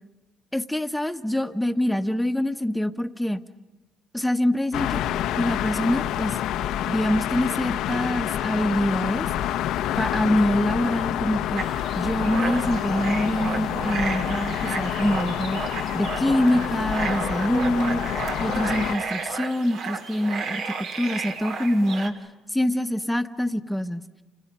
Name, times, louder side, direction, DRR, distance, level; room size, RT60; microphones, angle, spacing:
voice 1, 0.5-3.4 4.1-5.0 5.4-6.4 6.9-9.3 10.0-11.6 11.9-15.6 15.9-18.0 18.4-20.6 21.0-22.1 22.5-24.0, left 1 dB, 5° left, 9 dB, 1.2 m, -25 dB
sound 1, 4.7-19.0, left 11 dB, 80° left, 0.9 m, -28 dB
sound 2, 11.6-22.1, right 4 dB, 70° right, 2.6 m, -32 dB
29.5 x 28.5 x 5.5 m, 1.1 s
cardioid pair, 90°, 0 cm